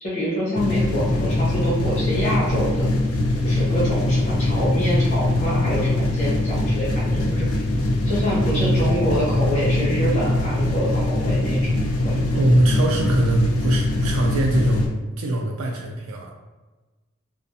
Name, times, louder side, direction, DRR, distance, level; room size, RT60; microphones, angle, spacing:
voice 1, 0.0-2.9 3.4-7.6 8.0-11.7 12.0-12.2, equal, 35° left, -7 dB, 0.9 m, -26 dB
sound 1, 0.6-14.9, left 1 dB, 80° left, 0.4 m, -22 dB
voice 2, 8.5-9.0 12.3-14.9 15.2-16.3, right 2 dB, 75° right, 0 dB, 0.3 m, -22 dB
2.4 x 2.1 x 2.6 m, 1.2 s
head